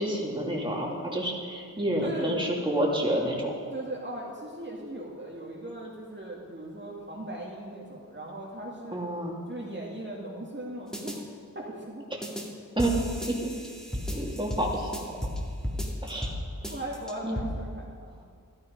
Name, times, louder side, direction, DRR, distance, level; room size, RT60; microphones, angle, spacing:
voice 1, 0.0-3.6 8.9-9.4 12.1-12.2 12.8-12.9 13.3-13.5 14.1-14.9 16.0-16.3 16.6-16.7 17.2-17.4, right 1 dB, 15° right, -2 dB, 2.7 m, -29 dB
voice 2, 2.0-2.4 3.7-9.0 9.5-11.2 11.5-12.1 16.7-18.1, right 1 dB, 30° right, -4 dB, 2.2 m, -38 dB
sound 1, 10.9-11.2 12.2-12.5 12.8-15.4 15.6-16.4 16.6-17.4, equal, ahead, 2.4 m, -34 dB
13.5 x 13.0 x 5.4 m, 2.2 s
wide cardioid pair, 70°, 35 cm